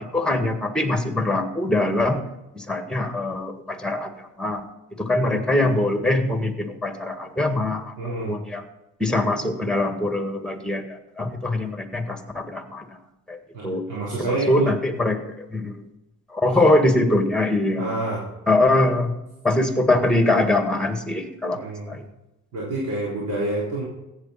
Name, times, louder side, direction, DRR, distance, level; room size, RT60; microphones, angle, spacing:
voice 1, 0.0-2.2 2.5-4.6 5.0-7.9 8.3-8.6 9.0-13.0 13.3-13.8 14.2-15.9 16.3-17.9 18.5-19.1 19.4-21.6 21.9-22.0, left 2 dB, 5° left, 6 dB, 1.9 m, -23 dB
voice 2, 8.0-8.3 13.5-14.7 16.4-16.6 17.7-18.2 21.5-22.0 22.5-23.8, right 2 dB, 85° right, -7 dB, 3.8 m, -28 dB
15.0 x 8.8 x 4.3 m, 0.95 s
cardioid pair, 90°, 30 cm